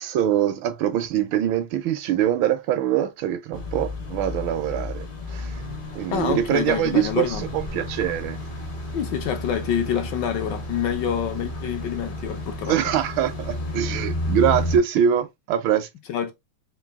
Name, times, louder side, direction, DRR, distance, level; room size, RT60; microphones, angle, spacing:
voice 1, 0.0-5.6 5.9-8.4 12.7-15.9, right 10 dB, 75° right, 1.3 m, -23 dB
sound 1, 3.5-14.8, left 1 dB, 45° left, 0.6 m, -32 dB
voice 2, 6.1-7.4 8.9-12.8 16.1-16.3, left 9 dB, 70° left, 1.2 m, -27 dB
3.9 x 2.5 x 3.4 m
omnidirectional pair, 2.3 m